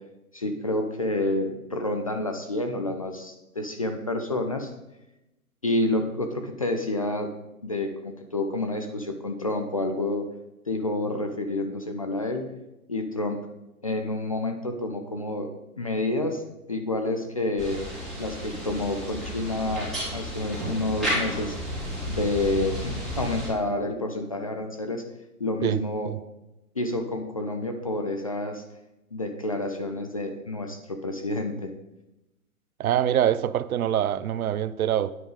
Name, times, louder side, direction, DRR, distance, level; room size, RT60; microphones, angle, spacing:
voice 1, 0.3-4.7 5.6-7.3 7.6-10.3 10.7-12.5 12.9-13.5 13.8-15.5 15.8-16.4 16.7-17.8 18.2-21.6 22.1-25.0 25.4-26.1 26.8-28.6 29.1-31.7, left 2 dB, 25° left, 0.4 m, -29 dB
sound 1, 17.6-23.5, equal, ahead, 3.3 m, -32 dB
voice 2, 32.8-35.1, right 10 dB, 75° right, 0.6 m, -24 dB
9.5 x 5.2 x 4.8 m
hypercardioid pair, 145°, 44 cm